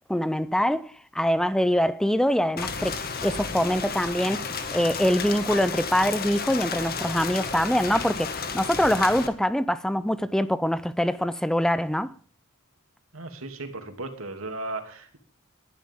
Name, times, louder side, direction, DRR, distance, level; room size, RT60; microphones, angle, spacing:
voice 1, 0.1-12.1, equal, 5° left, 0.6 m, -24 dB
Rain, 2.6-9.3, left 5 dB, 50° left, 1.9 m, -32 dB
voice 2, 13.1-15.2, right 2 dB, 85° right, 2.8 m, -36 dB
19.0 x 11.5 x 3.7 m
head